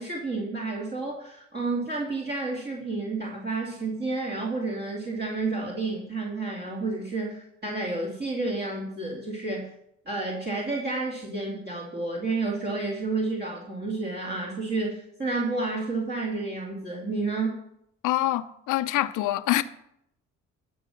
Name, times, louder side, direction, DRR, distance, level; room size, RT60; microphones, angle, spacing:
voice 1, 0.0-9.7 10.1-17.6, right 3 dB, 35° right, 2.5 m, -30 dB
voice 2, 18.0-19.6, left 15 dB, 90° left, 0.6 m, -25 dB
13.0 x 5.5 x 7.0 m
cardioid pair, 90°, 30 cm